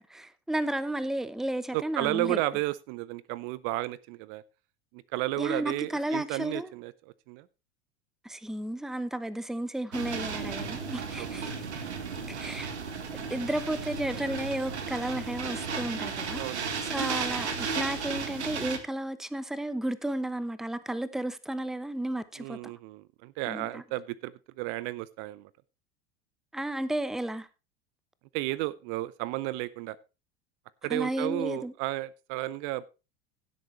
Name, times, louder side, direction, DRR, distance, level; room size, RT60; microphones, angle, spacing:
voice 1, 0.0-2.4 5.4-6.7 8.2-11.8 12.4-12.7 13.1-22.7 23.5-23.8 26.5-27.5 30.9-31.7, right 1 dB, ahead, 0.8 m, -33 dB
voice 2, 1.7-4.4 4.9-6.9 7.3-7.5 10.6-10.8 11.4-11.5 16.3-16.8 22.4-25.5 28.3-30.0 30.8-32.8, right 17 dB, 50° right, 0.6 m, -33 dB
sound 1, 9.9-18.8, right 5 dB, 80° right, 1.7 m, -34 dB
16.5 x 8.1 x 3.2 m
figure-of-eight pair, 80°, 33 cm